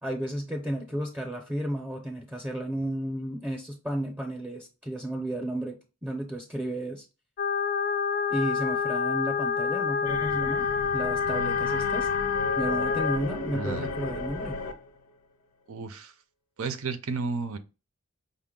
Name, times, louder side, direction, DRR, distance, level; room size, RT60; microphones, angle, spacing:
voice 1, 0.0-7.0 8.3-12.1 12.6-14.6, right 1 dB, 10° right, 0.6 m, -33 dB
sound 1, 7.4-13.2, left 6 dB, 45° left, 0.3 m, -27 dB
sound 2, 10.1-15.0, left 3 dB, 90° left, 0.6 m, -35 dB
voice 2, 13.5-13.9 15.7-16.1 16.6-17.6, right 4 dB, 75° right, 0.6 m, -32 dB
5.4 x 2.2 x 3.6 m
head